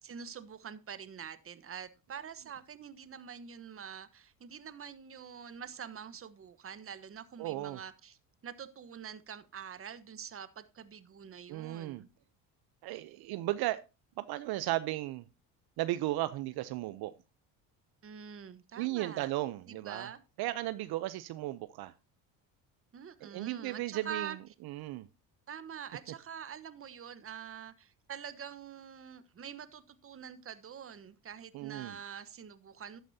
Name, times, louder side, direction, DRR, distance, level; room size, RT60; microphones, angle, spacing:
voice 1, 0.0-8.2 8.4-12.1 18.0-19.3 19.7-20.2 22.9-24.4 25.5-33.0, right 7 dB, 30° right, 1.1 m, -45 dB
voice 2, 7.4-7.8 11.5-12.0 12.8-13.8 14.2-15.2 15.8-17.1 18.8-20.1 20.4-21.9 23.2-24.3 24.6-25.1 31.5-32.0, right 16 dB, 60° right, 0.7 m, -35 dB
12.0 x 9.3 x 2.8 m
supercardioid pair, 95°, 42 cm